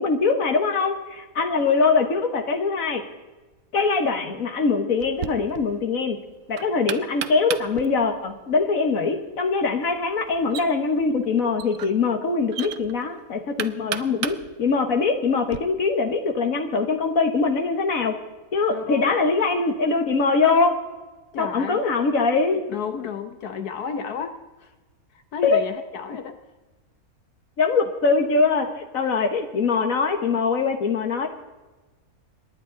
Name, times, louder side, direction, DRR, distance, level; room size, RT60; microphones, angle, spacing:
voice 1, 0.0-3.0 3.7-6.2 6.5-18.1 18.5-20.7 21.4-22.6 25.4-25.6 27.6-31.3, left 4 dB, 60° left, 5 dB, 1.6 m, -22 dB
Knock, 5.0-15.6, right 9 dB, 65° right, 1.0 m, -37 dB
voice 2, 18.7-19.1 21.3-21.8 22.7-24.7 25.3-26.4, left 6 dB, 80° left, 8 dB, 1.5 m, -32 dB
27.0 x 10.5 x 3.9 m, 1.2 s
omnidirectional pair, 1.6 m